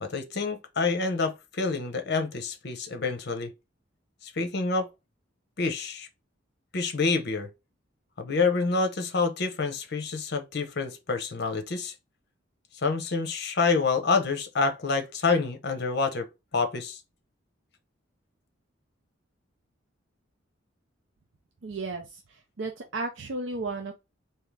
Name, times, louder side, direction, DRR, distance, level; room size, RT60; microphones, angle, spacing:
voice 1, 0.0-3.5 4.2-4.9 5.6-6.1 6.7-7.5 8.2-11.9 12.8-17.0, left 4 dB, 55° left, 0.8 m, -27 dB
voice 2, 21.6-23.9, right 3 dB, 70° right, 0.6 m, -34 dB
3.6 x 2.8 x 3.3 m
head